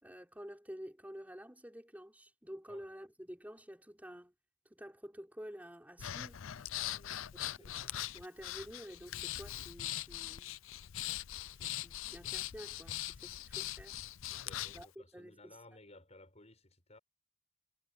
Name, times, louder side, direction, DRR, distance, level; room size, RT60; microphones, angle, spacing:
voice 1, 0.0-4.3 4.7-6.4 7.3-10.5 11.5-14.0 14.7-15.6, equal, 10° right, 4.7 m, -50 dB
Breathing, 6.0-14.8, left 13 dB, 70° left, 0.5 m, -41 dB
voice 2, 6.7-7.8 14.3-17.0, left 2 dB, 30° left, 7.3 m, -59 dB
head